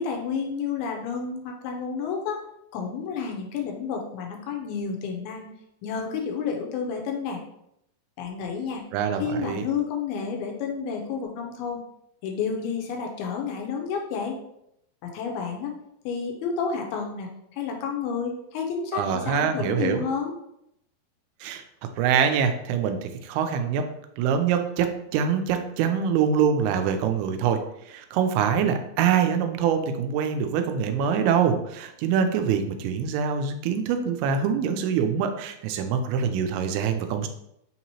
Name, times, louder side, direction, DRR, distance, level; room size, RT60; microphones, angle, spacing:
voice 1, 0.0-2.4 2.7-5.5 5.8-7.4 8.2-8.8 9.2-11.8 12.2-14.4 15.0-15.8 16.1-20.3, left 6 dB, 85° left, 2 dB, 2.5 m, -30 dB
voice 2, 8.9-9.6 18.9-20.1 21.4-21.6 22.0-23.9 24.2-27.6 27.9-37.3, right 7 dB, 85° right, 6 dB, 2.5 m, -24 dB
5.9 x 2.8 x 2.8 m, 0.78 s
omnidirectional pair, 4.5 m